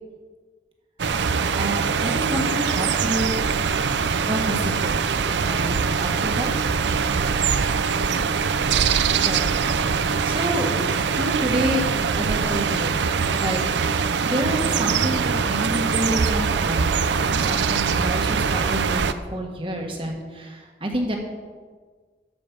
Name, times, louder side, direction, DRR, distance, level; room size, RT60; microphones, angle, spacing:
sound 1, 1.0-19.1, right 5 dB, 80° right, 0.5 m, -23 dB
voice 1, 1.5-3.5 4.2-6.5 9.2-10.7 11.2-11.9 12.2-13.0 13.4-13.6 14.2-16.8 17.1-19.0 19.3-21.2, right 1 dB, 30° right, 2 dB, 1.4 m, -28 dB
12.0 x 5.3 x 6.8 m, 1.5 s
head